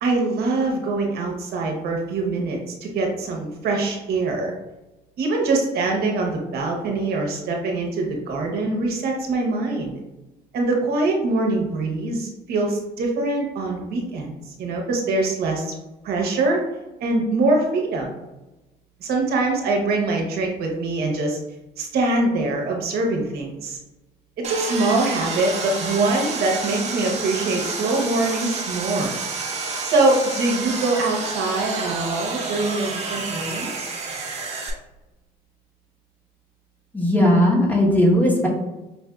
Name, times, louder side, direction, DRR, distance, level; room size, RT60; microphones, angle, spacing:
voice 1, 0.0-4.5 5.2-9.9 10.5-15.7 16.0-16.6 17.0-18.2 19.0-21.4 21.8-23.8 24.4-29.2 29.8-34.0, right 2 dB, 70° right, 1 dB, 0.9 m, -23 dB
Sawing, 24.4-34.7, right 3 dB, 40° right, 0.9 m, -29 dB
voice 2, 36.9-38.5, left 1 dB, 10° left, -3 dB, 1.1 m, -17 dB
5.4 x 2.6 x 2.3 m, 1.0 s
cardioid pair, 110°, 17 cm